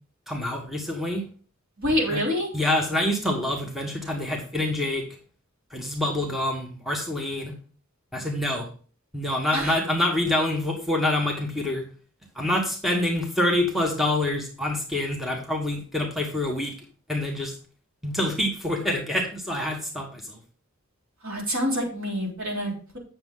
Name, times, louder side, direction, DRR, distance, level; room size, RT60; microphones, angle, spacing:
voice 1, 0.3-1.2 2.1-2.2 2.5-5.0 5.7-7.5 8.1-8.7 9.1-11.8 12.3-16.7 17.1-17.5 18.0-20.4, left 1 dB, ahead, 0 dB, 1.5 m, -26 dB
voice 2, 1.8-2.5 9.5-9.7 21.2-23.0, equal, 70° right, -2 dB, 3.8 m, -27 dB
9.3 x 6.9 x 3.7 m, 0.40 s
head